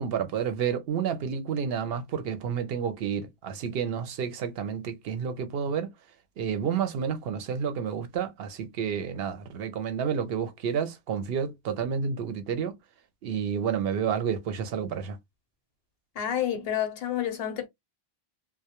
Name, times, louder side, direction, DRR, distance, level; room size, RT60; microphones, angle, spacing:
voice 1, 0.0-5.9 6.4-12.8 13.2-15.2, right 7 dB, 70° right, 0.7 m, -30 dB
voice 2, 16.2-17.7, left 10 dB, 70° left, 0.8 m, -29 dB
2.2 x 2.1 x 2.8 m
omnidirectional pair, 1.1 m